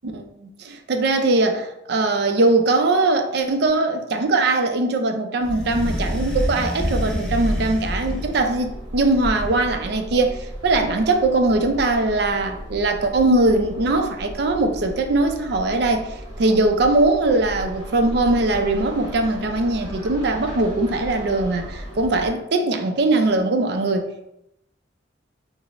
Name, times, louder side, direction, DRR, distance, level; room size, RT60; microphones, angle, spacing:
voice 1, 0.0-16.1 16.4-24.1, right 2 dB, 60° right, 5 dB, 0.4 m, -21 dB
sound 1, 5.4-8.5 9.0-9.9, equal, ahead, 1.0 m, -27 dB
sound 2, 7.5-22.3, equal, 20° right, 1.2 m, -36 dB
5.8 x 2.0 x 2.5 m, 0.82 s
head